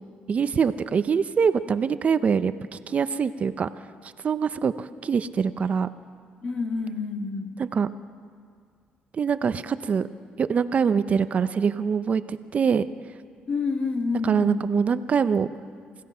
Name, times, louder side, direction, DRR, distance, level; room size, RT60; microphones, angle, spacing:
voice 1, 0.3-3.7 4.2-5.9 7.6-7.9 9.1-10.1 10.4-12.9 14.2-15.5, right 6 dB, 45° right, 12 dB, 0.8 m, -24 dB
voice 2, 6.4-7.6 13.5-14.6, left 4 dB, 40° left, 4 dB, 2.1 m, -28 dB
28.5 x 16.0 x 5.7 m, 2.1 s
cardioid pair, 95°, 3 cm